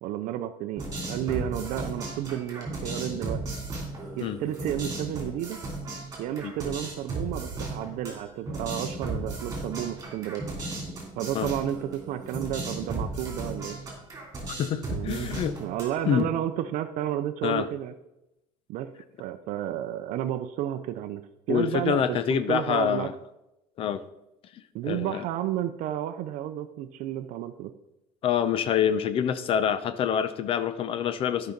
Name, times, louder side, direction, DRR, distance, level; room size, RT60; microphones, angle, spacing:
voice 1, 0.0-3.4 4.2-5.6 6.2-10.5 11.2-13.8 14.9-15.3 15.6-17.9 18.7-18.9 19.2-23.1 24.7-27.7, right 11 dB, 60° right, 10 dB, 0.6 m, -32 dB
sound 1, 0.8-16.2, right 2 dB, 20° right, 3.1 m, -35 dB
voice 2, 14.6-15.5 16.0-16.3 17.4-17.7 21.5-23.1 23.8-24.0 24.8-25.2 28.2-31.5, left 8 dB, 40° left, 13 dB, 0.7 m, -26 dB
13.0 x 5.6 x 3.9 m, 0.90 s
cardioid pair, 150°, 14 cm